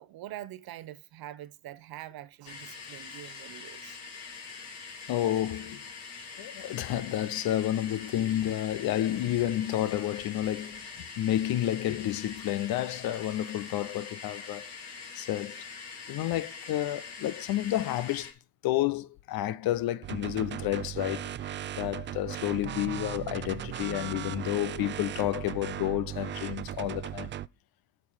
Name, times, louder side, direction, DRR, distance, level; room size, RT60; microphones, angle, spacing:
voice 1, 0.0-4.0, right 13 dB, 55° right, 0.8 m, -44 dB
sound 1, 2.4-18.3, left 5 dB, 70° left, 2.7 m, -44 dB
voice 2, 5.1-5.9 6.4-14.7 15.2-15.6 16.1-18.3 18.6-21.3 21.8-27.3, left 13 dB, 55° left, 0.7 m, -30 dB
sound 2, 20.0-27.5, right 11 dB, 30° right, 0.4 m, -37 dB
8.3 x 4.4 x 7.2 m
hypercardioid pair, 50°, 44 cm